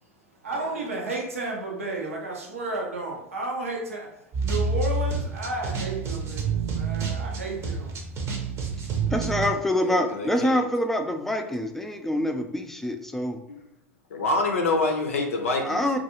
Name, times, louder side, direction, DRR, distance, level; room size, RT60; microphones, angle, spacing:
voice 1, 0.0-8.1, right 2 dB, 85° right, -1 dB, 0.6 m, -33 dB
sound 1, 4.3-9.5, right 4 dB, 40° right, 0.7 m, -28 dB
voice 2, 9.1-13.4 15.6-16.0, left 1 dB, 5° left, 5 dB, 0.4 m, -26 dB
voice 3, 9.8-10.6 14.1-16.0, left 2 dB, 85° left, 2 dB, 0.5 m, -26 dB
2.3 x 2.3 x 2.9 m, 0.82 s
hypercardioid pair, 85°, 7 cm